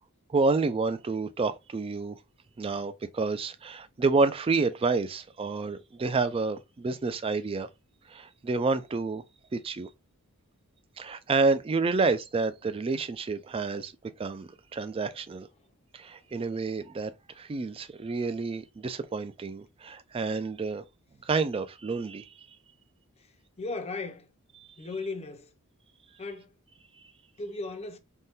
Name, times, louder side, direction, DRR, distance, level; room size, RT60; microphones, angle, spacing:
voice 1, 0.3-2.2 2.6-7.7 8.1-9.2 9.5-9.9 11.0-13.9 14.2-15.5 15.9-20.8 21.3-22.3, right 4 dB, 25° right, 0.3 m, -29 dB
voice 2, 23.2-24.3 24.8-25.5 26.2-26.5 27.4-28.0, left 3 dB, 30° left, 0.5 m, -37 dB
3.5 x 2.2 x 2.6 m
head